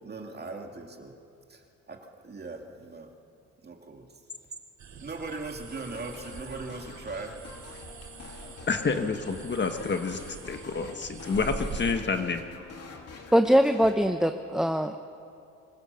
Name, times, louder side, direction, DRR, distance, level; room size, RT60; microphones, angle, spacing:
voice 1, 0.0-1.2 1.5-3.1 3.6-4.1 5.0-7.4, right 3 dB, 35° right, 3 dB, 2.3 m, -40 dB
sound 1, 4.8-11.9, right 5 dB, 65° right, 2.6 m, -43 dB
sound 2, 5.7-14.1, left 4 dB, 55° left, 2.9 m, -46 dB
voice 2, 8.7-10.2 10.5-12.4, left 4 dB, 35° left, 7 dB, 1.4 m, -28 dB
voice 3, 13.3-15.0, equal, ahead, 7 dB, 0.8 m, -22 dB
24.5 x 16.0 x 6.9 m, 2.5 s
cardioid pair, 90°, 30 cm